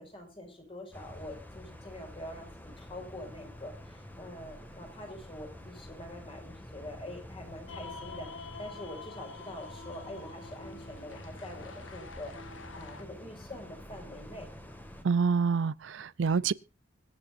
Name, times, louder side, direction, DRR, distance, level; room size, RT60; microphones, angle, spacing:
voice 1, 0.0-12.3 12.7-14.5, left 1 dB, 30° left, 5.3 m, -45 dB
sound 1, 0.9-15.0, left 1 dB, 10° left, 2.0 m, -48 dB
sound 2, 7.7-13.0, left 4 dB, 85° left, 1.4 m, -47 dB
voice 2, 15.0-16.5, right 5 dB, 75° right, 0.5 m, -27 dB
25.5 x 8.7 x 2.6 m
head